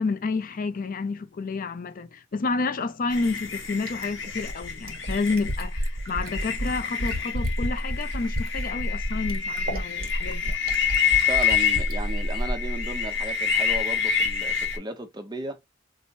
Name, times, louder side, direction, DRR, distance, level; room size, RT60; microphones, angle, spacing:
voice 1, 0.0-10.5, left 3 dB, 45° left, 0.5 m, -30 dB
sound 1, 3.1-14.8, left 5 dB, 70° left, 1.0 m, -27 dB
Fill (with liquid), 3.9-12.0 13.3-13.4, equal, 50° right, 1.0 m, -32 dB
voice 2, 11.3-15.6, right 1 dB, 20° right, 0.8 m, -35 dB
4.4 x 2.2 x 2.6 m
head